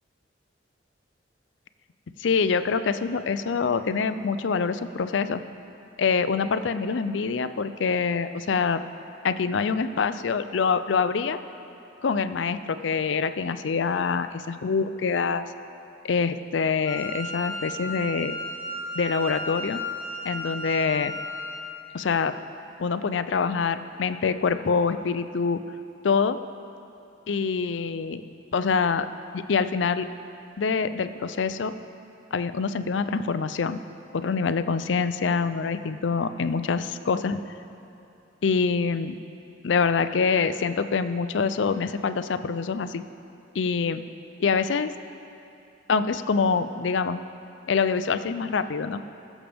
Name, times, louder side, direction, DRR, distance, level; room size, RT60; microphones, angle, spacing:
voice 1, 2.2-5.4 6.0-8.8 9.2-11.4 12.0-15.5 16.0-18.4 19.0-19.8 20.2-21.2 21.9-22.3 22.8-25.6 26.0-26.4 27.3-28.3 28.5-29.1 29.3-30.1 30.6-31.7 32.3-33.8 34.1-37.4 38.4-39.2 39.6-43.0 43.5-44.0 44.4-44.9 45.9-47.2 47.7-49.0, left 5 dB, 75° left, 11 dB, 0.5 m, -25 dB
Wind instrument woodwind instrument, 16.8-21.7, equal, 5° right, 2.8 m, -34 dB
21.0 x 7.3 x 3.5 m, 2.8 s
head